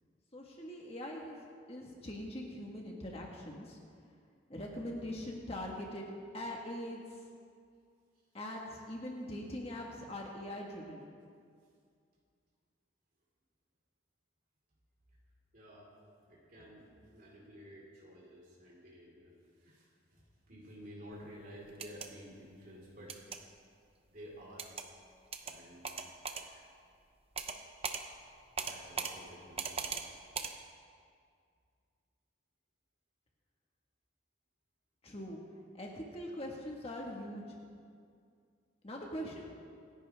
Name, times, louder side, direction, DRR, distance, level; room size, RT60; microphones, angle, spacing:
voice 1, 0.3-1.4 1.7-3.8 4.5-7.2 8.3-11.1 35.0-35.4 35.7-37.6 38.8-39.4, left 1 dB, 30° left, -1 dB, 1.7 m, -42 dB
voice 2, 15.5-15.9 16.3-23.2 24.1-24.7 25.4-26.7 28.6-29.9, equal, 45° right, -5 dB, 4.6 m, -53 dB
sound 1, 21.7-22.1 23.1-23.4 24.6-24.9 25.3-25.5 25.8-26.4 27.4-27.6 27.8-28.0 28.6-29.1 29.6-30.0 30.3-30.5, right 6 dB, 30° right, 0.8 m, -38 dB
27.0 x 11.0 x 3.6 m, 2.2 s
head